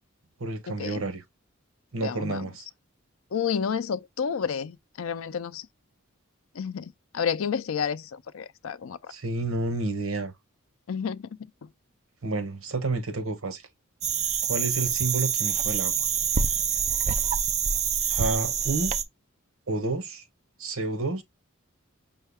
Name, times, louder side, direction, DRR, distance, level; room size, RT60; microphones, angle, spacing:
voice 1, 0.4-1.2 1.9-2.7 9.1-10.3 12.2-13.6 14.4-16.1 18.1-18.9 19.7-20.2 20.6-21.2, right 3 dB, 80° right, 1.0 m, -30 dB
voice 2, 2.0-2.4 3.3-5.6 6.6-9.0 10.9-11.3, left 7 dB, 75° left, 0.4 m, -30 dB
sound 1, 14.0-19.0, right 7 dB, 30° right, 0.4 m, -26 dB
5.5 x 2.2 x 3.4 m
head